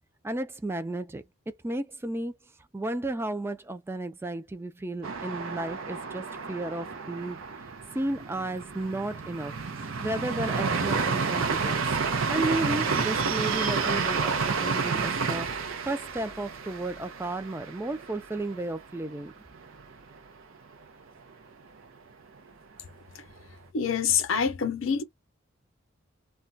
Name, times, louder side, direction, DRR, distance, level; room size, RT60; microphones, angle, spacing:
voice 1, 0.2-1.2 1.6-2.4 2.7-7.4 7.9-9.5 10.0-11.8 12.3-15.5 15.9-19.3, right 2 dB, 10° right, 0.3 m, -33 dB
sound 1, 5.0-18.8 19.1-19.2 19.5-20.1, right 5 dB, 75° right, 0.6 m, -30 dB
voice 2, 23.7-25.0, left 6 dB, 75° left, 0.6 m, -26 dB
2.2 x 2.2 x 3.9 m
head